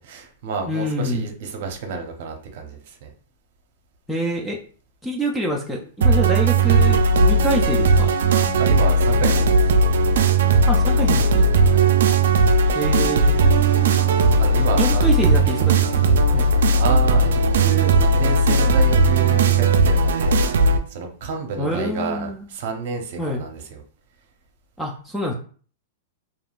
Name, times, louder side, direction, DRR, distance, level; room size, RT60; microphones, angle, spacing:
voice 1, 0.0-3.1 8.6-9.7 11.6-11.9 14.4-15.0 16.8-23.8, right 5 dB, 50° right, 4 dB, 0.7 m, -30 dB
voice 2, 0.7-1.3 4.1-4.6 5.0-8.1 10.7-11.5 12.7-13.4 14.8-16.5 21.6-22.5 23.2-23.4 24.8-25.3, equal, ahead, -1 dB, 0.3 m, -26 dB
sound 1, 6.0-20.8, right 2 dB, 80° right, 0.3 m, -17 dB
3.4 x 2.4 x 2.3 m, 0.43 s
supercardioid pair, 170°, 0 cm